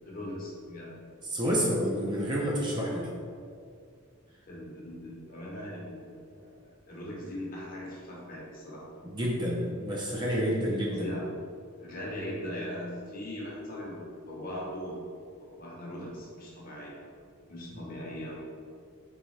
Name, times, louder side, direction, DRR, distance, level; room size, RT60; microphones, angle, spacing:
voice 1, 0.0-0.9 1.4-1.7 4.5-6.5 6.9-8.8 10.9-11.2 11.8-14.0 14.3-15.0 15.4-16.9 17.5-18.4, left 1 dB, 40° left, -4 dB, 0.9 m, -39 dB
voice 2, 1.3-3.1 9.0-11.1 17.7-17.8, equal, 20° right, -3 dB, 0.5 m, -29 dB
3.9 x 3.4 x 3.1 m, 2.3 s
head